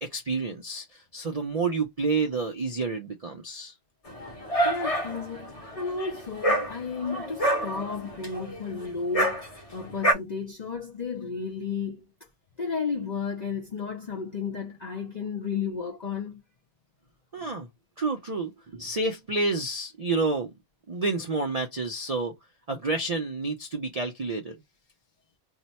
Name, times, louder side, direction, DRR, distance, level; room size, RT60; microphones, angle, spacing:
voice 1, 0.0-3.7 17.3-17.7 18.0-20.5 20.9-22.3 22.7-24.5, right 3 dB, 75° right, 0.3 m, -29 dB
Dog, 4.1-10.1, right 1 dB, 30° left, 0.9 m, -28 dB
voice 2, 4.6-12.0 12.6-16.4, left 5 dB, 70° left, 0.4 m, -33 dB
2.7 x 2.1 x 4.0 m
omnidirectional pair, 1.5 m